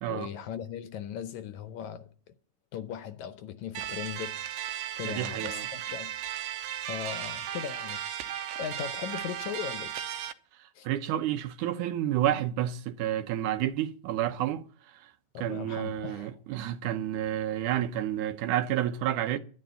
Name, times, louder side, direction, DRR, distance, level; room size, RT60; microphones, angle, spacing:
voice 1, 0.1-2.1 2.7-4.4 5.0-6.2 6.9-10.0 10.8-10.9 15.3-16.4, left 9 dB, 75° left, 2.0 m, -38 dB
sound 1, 3.8-10.3, right 10 dB, 90° right, 2.5 m, -36 dB
voice 2, 5.0-5.7 10.6-14.6 14.9-15.1 15.4-19.4, right 12 dB, 75° right, 2.2 m, -30 dB
12.0 x 10.5 x 6.8 m
omnidirectional pair, 3.8 m